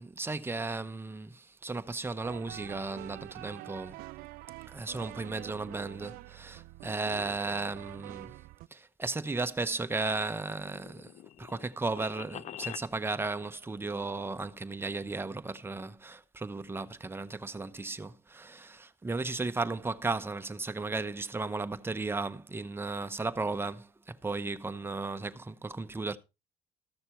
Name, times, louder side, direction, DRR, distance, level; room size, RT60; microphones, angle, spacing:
voice 1, 0.0-4.0 4.7-8.3 8.7-11.1 11.4-23.9 24.2-26.2, right 3 dB, 15° right, 0.9 m, -35 dB
sound 1, 2.2-8.7, right 18 dB, 80° right, 0.5 m, -46 dB
sound 2, 10.1-12.9, left 11 dB, 50° left, 0.6 m, -45 dB
14.0 x 6.6 x 4.5 m
cardioid pair, 95°, 15 cm